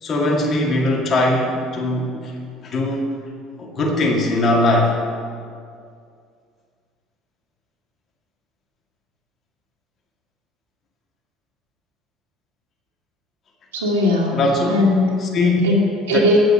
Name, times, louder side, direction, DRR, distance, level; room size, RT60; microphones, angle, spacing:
voice 1, 0.0-2.3 2.6-3.1 3.6-5.0 14.3-14.9 15.2-15.6 16.1-16.2, left 2 dB, 40° left, 0 dB, 2.1 m, -20 dB
voice 2, 13.7-14.4 14.7-15.1 15.6-16.4, left 2 dB, 80° right, -4 dB, 1.8 m, -18 dB
8.9 x 7.7 x 7.7 m, 2.2 s
figure-of-eight pair, 60°, 0 cm